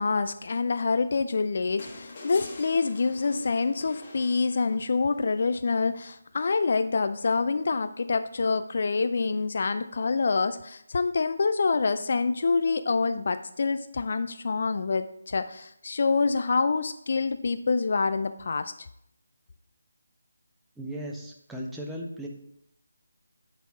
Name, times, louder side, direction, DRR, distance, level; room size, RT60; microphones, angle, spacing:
voice 1, 0.0-18.7, left 4 dB, 50° left, 11 dB, 0.3 m, -26 dB
sound 1, 1.8-5.1 6.6-6.7, left 3 dB, 35° left, 1.3 m, -44 dB
voice 2, 20.8-22.3, equal, 5° right, -1 dB, 0.7 m, -36 dB
9.5 x 4.1 x 4.2 m, 0.75 s
figure-of-eight pair, 155°, 0 cm